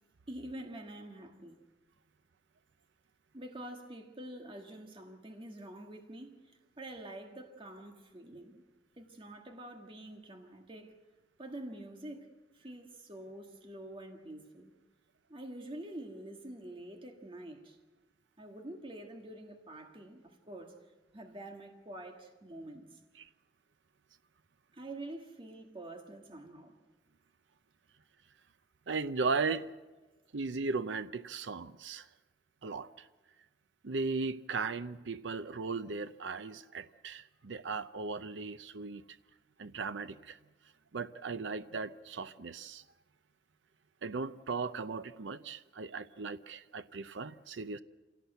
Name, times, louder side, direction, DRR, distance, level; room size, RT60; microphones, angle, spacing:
voice 1, 0.3-1.6 3.3-8.6 9.0-10.9 11.4-12.3 12.5-14.7 15.3-17.8 18.4-20.8 21.1-23.0 24.7-26.8, right 1 dB, 30° right, 1.7 m, -47 dB
voice 2, 28.9-29.7 30.3-32.1 32.6-33.0 33.8-39.0 39.6-40.4 40.9-42.8 44.0-47.8, right 4 dB, 85° right, 0.7 m, -37 dB
26.0 x 17.5 x 8.0 m
head